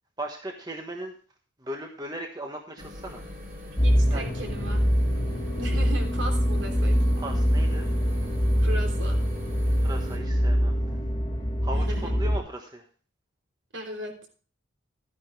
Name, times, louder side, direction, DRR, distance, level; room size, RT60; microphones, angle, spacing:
voice 1, 0.2-1.1 1.6-3.2 4.1-4.2 5.7-5.8 7.2-7.9 9.8-11.0 11.6-12.8, right 1 dB, 20° right, 3 dB, 1.2 m, -37 dB
sound 1, 2.8-10.2, left 1 dB, 45° right, 3.3 m, -42 dB
sound 2, 3.8-12.4, equal, 20° left, 1.8 m, -24 dB
voice 2, 3.8-4.8 5.6-7.0 8.6-9.2 11.7-12.1 13.7-14.3, right 1 dB, 65° right, 3 dB, 3.3 m, -37 dB
13.0 x 9.9 x 3.4 m, 0.41 s
head